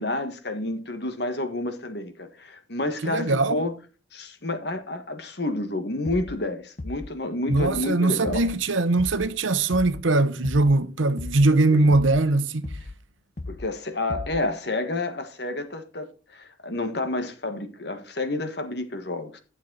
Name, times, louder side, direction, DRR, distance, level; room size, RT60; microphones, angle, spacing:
voice 1, 0.0-3.7 4.1-8.4 11.7-11.9 13.5-19.4, left 2 dB, 55° left, 1.6 m, -30 dB
voice 2, 3.0-3.6 7.5-12.7, right 2 dB, 85° right, 0.9 m, -21 dB
sound 1, 6.0-6.4 6.8-7.2 7.5-7.9 8.2-8.6 9.0-9.3 9.7-10.1 10.4-10.8 11.2-11.5 11.9-12.3 12.6-13.0 13.4-13.7 14.1-14.5, left 2 dB, 40° left, 0.7 m, -36 dB
11.5 x 7.3 x 4.0 m
head